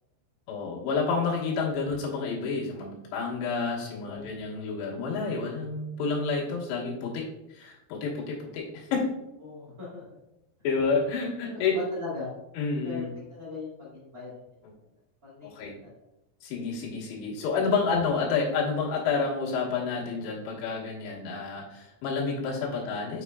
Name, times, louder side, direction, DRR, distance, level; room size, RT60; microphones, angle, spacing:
voice 1, 0.5-7.3 7.5-9.0 10.6-11.8 12.6-13.1 15.4-15.7 16.4-23.2, left 4 dB, 80° left, -6 dB, 3.7 m, -29 dB
voice 2, 3.9-4.3 9.4-10.0 11.5-12.3 12.8-13.0 13.3-14.4 15.2-15.7 22.7-22.9, left 4 dB, 45° right, -7 dB, 1.1 m, -39 dB
6.6 x 6.4 x 2.3 m, 0.91 s
omnidirectional pair, 5.0 m